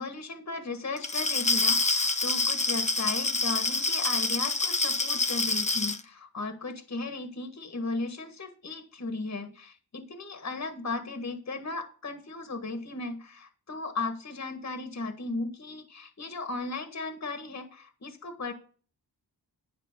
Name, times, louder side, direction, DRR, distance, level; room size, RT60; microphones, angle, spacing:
voice 1, 0.0-18.5, left 3 dB, 45° left, 7 dB, 1.6 m, -36 dB
Glass, 1.0-6.0, left 3 dB, 20° left, 0.9 m, -27 dB
10.5 x 4.9 x 6.7 m, 0.40 s
wide cardioid pair, 95°, 38 cm